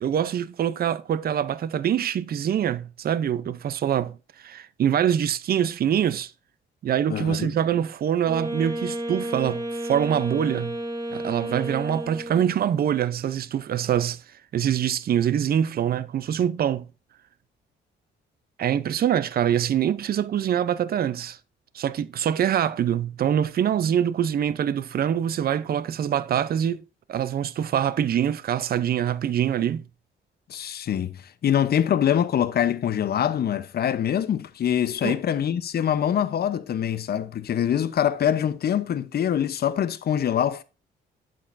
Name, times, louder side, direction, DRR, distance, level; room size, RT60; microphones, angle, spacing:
voice 1, 0.0-6.3 6.8-10.8 11.1-14.2 14.5-16.9 18.6-21.4 21.7-26.8 27.1-29.8 35.0-35.2, right 9 dB, 50° right, 0.5 m, -24 dB
voice 2, 7.1-7.5 30.5-31.2 31.4-40.6, left 9 dB, 50° left, 0.7 m, -24 dB
Wind instrument woodwind instrument, 8.2-12.6, right 1 dB, 15° right, 2.1 m, -32 dB
8.5 x 7.8 x 2.6 m
cardioid pair, 90°, 20 cm